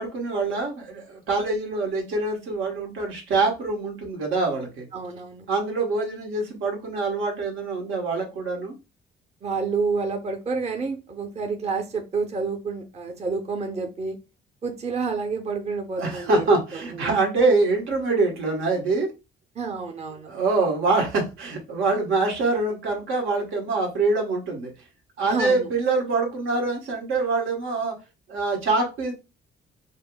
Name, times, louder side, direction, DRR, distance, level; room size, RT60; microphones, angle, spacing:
voice 1, 0.0-4.9 5.5-8.7 16.0-19.1 20.3-24.7 25.2-27.9 28.3-29.1, right 3 dB, 85° right, 0 dB, 1.2 m, -24 dB
voice 2, 4.9-5.5 9.4-14.2 14.6-16.4 16.7-17.2 19.6-20.3 25.2-25.7, right 4 dB, 35° right, 4 dB, 0.7 m, -29 dB
5.2 x 2.0 x 2.2 m, 0.28 s
cardioid pair, 90°, 20 cm